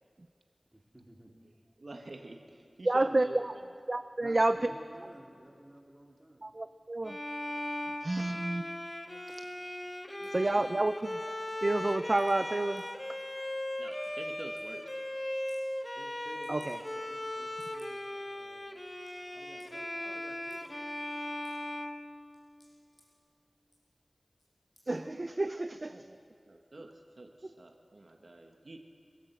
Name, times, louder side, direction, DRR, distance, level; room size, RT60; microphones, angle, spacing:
voice 1, 0.7-1.3 4.2-6.5 15.9-18.6 19.3-20.7, right 1 dB, 20° right, 0 dB, 2.9 m, -53 dB
voice 2, 1.8-3.6 7.9-8.4 10.2-10.9 13.8-14.9 25.9-26.2 26.5-28.8, right 2 dB, 65° right, 3 dB, 1.3 m, -47 dB
voice 3, 2.8-3.5 3.9-4.6 6.4-7.2 8.0-8.6 9.3-9.4 10.3-11.2 11.6-12.9 16.5-16.8 24.9-26.0, right 2 dB, 45° right, 10 dB, 0.5 m, -29 dB
Bowed string instrument, 7.0-22.8, left 1 dB, 20° left, 1.0 m, -38 dB
sound 1, 9.3-9.4 10.2-10.3 10.6-11.2 11.5-12.4 12.8-12.9 13.5-13.6 13.9-14.1 14.4-14.6 14.9-15.0 15.4-15.7 16.4-17.1 17.5-18.0 18.4-18.5 18.8-19.1 19.6-19.8 20.5-20.7 21.1-21.8 22.3-23.0 23.6-23.9 24.4-24.5 24.8-25.0 25.3-25.4, left 1 dB, 50° left, 6.7 m, -63 dB
26.0 x 12.5 x 8.0 m, 2.3 s
wide cardioid pair, 70°, 0 cm